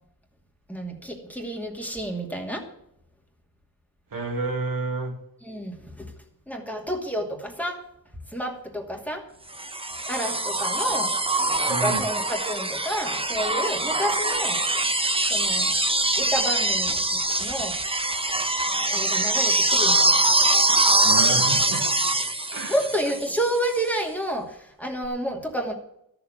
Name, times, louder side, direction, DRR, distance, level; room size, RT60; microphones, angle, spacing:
voice 1, 0.7-2.7 5.4-6.1 6.5-7.8 8.3-9.3 10.1-11.2 11.7-14.6 15.3-15.7 16.2-17.8 18.9-20.2 22.7-25.7, right 1 dB, 5° left, 2 dB, 2.5 m, -30 dB
voice 2, 4.1-5.2 11.7-12.0 21.0-21.9 22.5-22.7, right 3 dB, 70° right, 3 dB, 2.3 m, -29 dB
sound 1, 9.6-23.6 25.0-25.1, right 2 dB, 15° right, 1.2 m, -23 dB
13.0 x 7.1 x 8.3 m, 0.77 s
wide cardioid pair, 90°, 36 cm